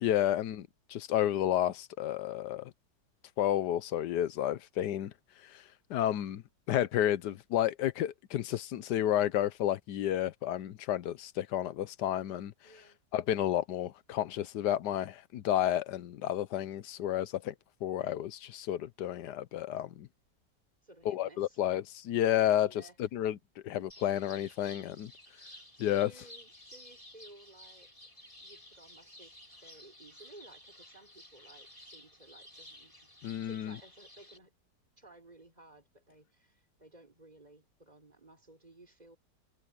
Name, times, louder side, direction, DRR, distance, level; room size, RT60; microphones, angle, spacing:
voice 1, 0.0-0.6 0.9-2.7 3.4-5.1 5.4-5.6 5.9-12.5 13.1-17.5 17.8-20.1 21.0-23.4 23.6-25.1 25.8-26.1 33.2-33.8, left 11 dB, 75° left, 1.3 m, -31 dB
voice 2, 12.6-13.1 20.8-21.6 22.6-23.0 25.8-28.1 28.4-33.1 33.4-34.6 35.0-39.2, right 2 dB, 25° right, 4.1 m, -57 dB
sound 1, 23.9-34.4, left 1 dB, 20° left, 6.2 m, -54 dB
omnidirectional pair, 1.8 m